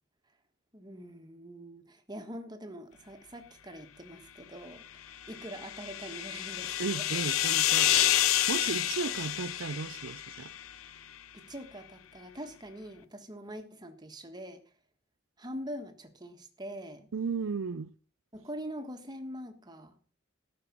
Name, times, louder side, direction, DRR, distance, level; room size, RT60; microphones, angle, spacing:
voice 1, 0.7-7.3 11.3-14.6 15.4-17.1 18.3-19.9, equal, 20° right, 1.5 m, -44 dB
sound 1, 5.1-10.7, left 12 dB, 85° left, 0.7 m, -29 dB
voice 2, 6.8-7.9 8.5-10.5 17.1-17.9, right 5 dB, 70° right, 0.5 m, -35 dB
14.0 x 6.7 x 5.9 m
head